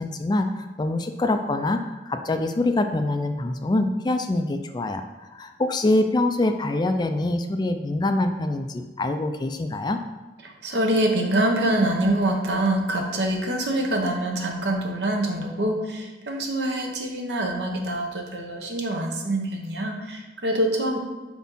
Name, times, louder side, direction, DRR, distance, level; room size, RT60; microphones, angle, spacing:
voice 1, 0.0-5.1 5.3-10.0, left 2 dB, 25° left, 7 dB, 0.3 m, -25 dB
voice 2, 10.4-21.0, right 1 dB, 70° right, 2 dB, 0.9 m, -25 dB
4.6 x 4.2 x 5.4 m, 1.3 s
head